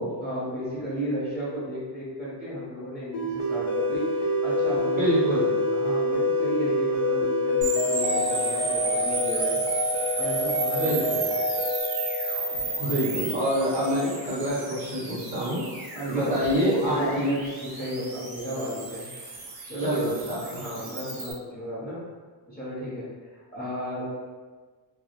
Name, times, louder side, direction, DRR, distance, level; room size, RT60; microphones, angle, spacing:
voice 1, 0.2-5.1 5.7-9.6 10.2-11.3 15.9-20.0 20.4-22.0 22.5-24.1, equal, 25° left, -9 dB, 0.7 m, -34 dB
sound 1, 3.1-13.5, left 1 dB, 75° left, 0.6 m, -27 dB
voice 2, 5.0-5.6 10.8-11.2 12.8-15.6 16.1-17.3 19.8-20.6, equal, 20° right, -10 dB, 0.6 m, -26 dB
sound 2, 7.6-21.3, right 3 dB, 55° right, 0.7 m, -33 dB
2.1 x 2.0 x 2.9 m, 1.4 s
cardioid pair, 160°, 43 cm